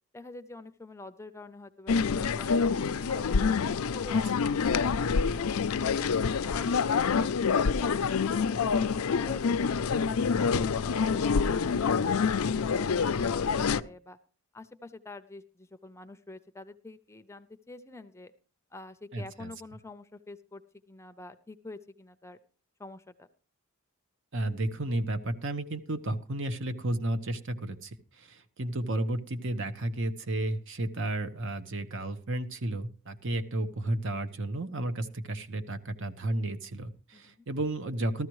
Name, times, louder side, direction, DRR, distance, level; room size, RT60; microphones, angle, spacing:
voice 1, 0.1-2.7 3.1-5.0 5.3-6.0 6.4-8.9 9.3-10.0 10.4-14.2 14.5-18.3 18.7-20.6 20.9-22.4 22.8-23.3 37.1-37.5, left 2 dB, 15° left, 10 dB, 0.6 m, -47 dB
sound 1, 1.9-13.8, left 5 dB, 75° left, 0.5 m, -27 dB
voice 2, 19.1-19.5 24.3-38.3, right 1 dB, 60° right, 10 dB, 1.1 m, -32 dB
14.5 x 13.0 x 3.1 m, 0.38 s
head